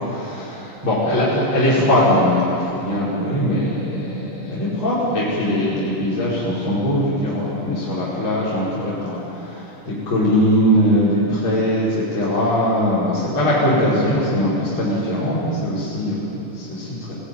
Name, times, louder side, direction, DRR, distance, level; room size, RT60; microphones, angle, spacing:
voice 1, 0.0-17.1, equal, 35° left, -9 dB, 6.1 m, -21 dB
26.0 x 17.0 x 9.4 m, 2.8 s
omnidirectional pair, 3.7 m